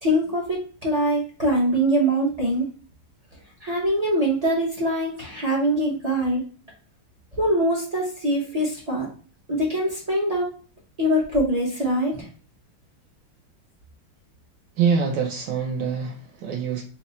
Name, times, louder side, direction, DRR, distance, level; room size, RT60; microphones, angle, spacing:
voice 1, 0.0-2.7 3.6-6.4 7.3-9.1 9.5-10.5 11.0-12.3, right 1 dB, 50° right, 0.4 m, -23 dB
voice 2, 14.8-16.8, right 6 dB, 70° right, 1.2 m, -25 dB
4.3 x 2.0 x 3.9 m
omnidirectional pair, 2.2 m